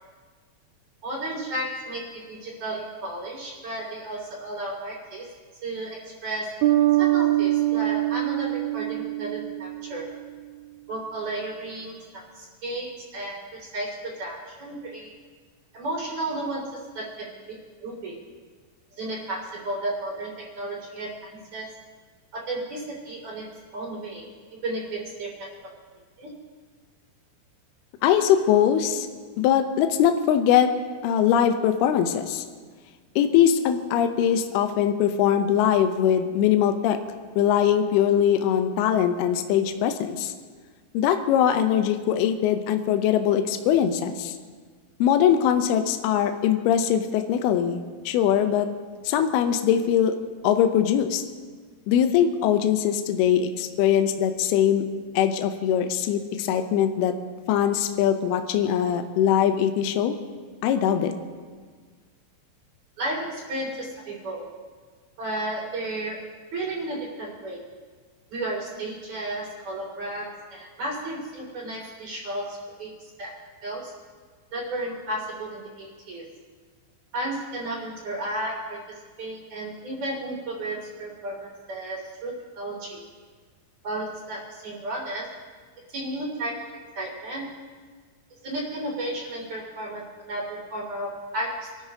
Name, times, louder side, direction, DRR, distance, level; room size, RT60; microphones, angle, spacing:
voice 1, 1.0-5.3 5.6-6.0 6.2-6.5 7.0-10.1 10.9-15.1 15.7-16.6 17.0-17.6 17.8-18.2 18.9-21.7 22.3-23.4 23.7-24.2 24.5-25.7 26.2-26.3 63.0-64.5 65.2-66.2 66.5-67.6 68.3-73.3 73.6-73.9 74.5-76.2 77.1-83.0 83.8-85.3 85.9-86.6 87.0-87.5 88.4-91.7, right 1 dB, 40° right, -4 dB, 3.7 m, -33 dB
Bass guitar, 6.6-10.2, right 16 dB, 85° right, 3.3 m, -23 dB
voice 2, 28.0-29.1 29.4-30.7 31.0-32.4 33.2-37.0 37.4-40.3 40.9-44.3 45.0-48.7 49.0-50.2 50.4-51.2 51.9-54.9 55.1-57.1 57.5-60.2 60.6-61.1, left 9 dB, 85° left, 7 dB, 2.3 m, -22 dB
27.0 x 13.0 x 2.9 m, 1.6 s
omnidirectional pair, 5.6 m